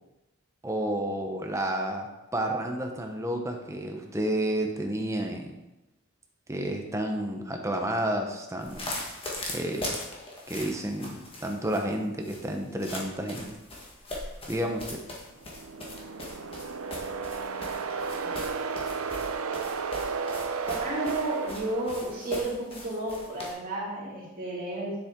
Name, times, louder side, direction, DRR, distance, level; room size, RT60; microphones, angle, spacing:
voice 1, 0.6-2.1 2.3-5.5 6.5-8.9 9.5-10.0 10.5-13.6 14.5-15.0, right 1 dB, 15° right, 3 dB, 0.9 m, -31 dB
sound 1, 8.6-23.5, left 1 dB, 25° left, 1.6 m, -40 dB
sound 2, 15.4-22.4, right 5 dB, 75° right, 0.6 m, -33 dB
voice 2, 20.7-25.0, right 1 dB, 40° right, -6 dB, 2.9 m, -32 dB
10.0 x 7.5 x 3.8 m, 1.0 s
head